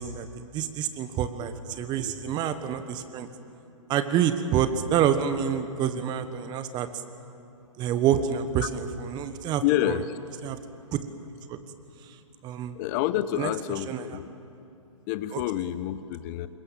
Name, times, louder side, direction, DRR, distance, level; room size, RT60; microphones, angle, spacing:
voice 1, 0.0-3.3 3.9-6.9 7.8-10.0 10.4-10.6 10.9-11.0 11.5-11.6 12.0-12.1 12.4-12.7 13.4-13.5 13.9-14.0 15.3-15.4, right 9 dB, 25° right, 10 dB, 1.3 m, -27 dB
voice 2, 9.6-10.2 12.7-14.3 15.1-16.5, left 13 dB, 35° left, 14 dB, 1.0 m, -28 dB
25.0 x 21.5 x 7.4 m, 2.7 s
hypercardioid pair, 125°, 17 cm